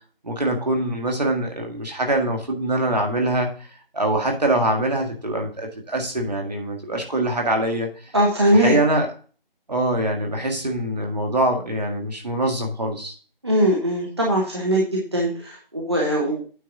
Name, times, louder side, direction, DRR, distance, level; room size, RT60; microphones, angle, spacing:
voice 1, 0.2-3.5 3.9-8.1 8.5-9.1 9.7-13.1, right 1 dB, 45° right, 2 dB, 1.8 m, -23 dB
voice 2, 8.1-8.7 13.4-16.4, equal, 30° right, -2 dB, 1.0 m, -20 dB
9.1 x 5.5 x 3.8 m, 0.39 s
figure-of-eight pair, 170°, 29 cm